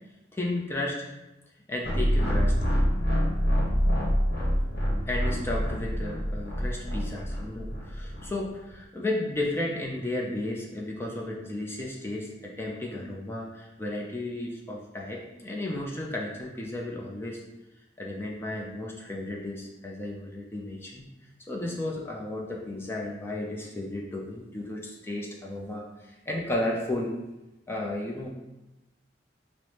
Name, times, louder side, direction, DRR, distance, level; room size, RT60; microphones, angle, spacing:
voice 1, 0.3-1.0 1.7-2.6 5.1-17.4 18.0-21.1 21.5-27.2 27.7-28.3, left 1 dB, 15° left, -2 dB, 0.4 m, -33 dB
sound 1, 1.8-8.3, equal, 60° left, 1.0 m, -26 dB
5.5 x 2.0 x 3.2 m, 1.0 s
head